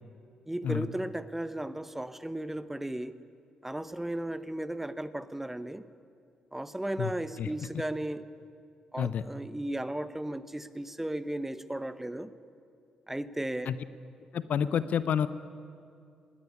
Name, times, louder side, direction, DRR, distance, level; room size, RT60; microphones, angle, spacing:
voice 1, 0.5-3.2 3.6-5.8 6.5-8.2 8.9-12.3 13.1-13.7, right 1 dB, 10° right, 13 dB, 1.1 m, -35 dB
voice 2, 14.3-15.3, left 8 dB, 60° left, 14 dB, 0.8 m, -28 dB
20.0 x 17.5 x 9.7 m, 2.4 s
hypercardioid pair, 45°, 3 cm